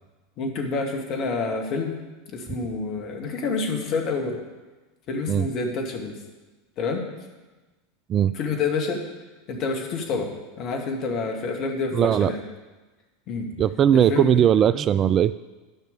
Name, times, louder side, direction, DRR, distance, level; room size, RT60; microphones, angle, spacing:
voice 1, 0.4-1.9 2.3-4.4 5.1-6.2 6.8-7.1 8.3-9.0 9.5-10.3 10.6-12.4 13.3-13.5 13.9-14.3, left 4 dB, 45° left, 1 dB, 2.2 m, -28 dB
voice 2, 11.9-12.3 13.6-15.3, right 9 dB, 35° right, 16 dB, 0.3 m, -19 dB
11.0 x 5.9 x 8.3 m, 1.2 s
figure-of-eight pair, 80°, 0 cm